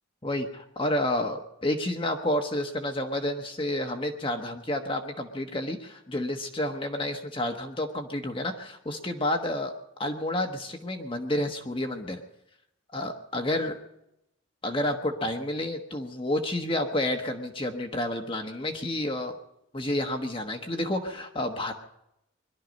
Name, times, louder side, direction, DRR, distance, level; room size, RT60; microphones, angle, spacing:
voice 1, 0.2-9.7 10.0-12.2 12.9-13.8 14.6-19.3 19.7-21.7, left 1 dB, 25° left, 4 dB, 1.2 m, -30 dB
22.0 x 12.0 x 5.3 m, 0.82 s
head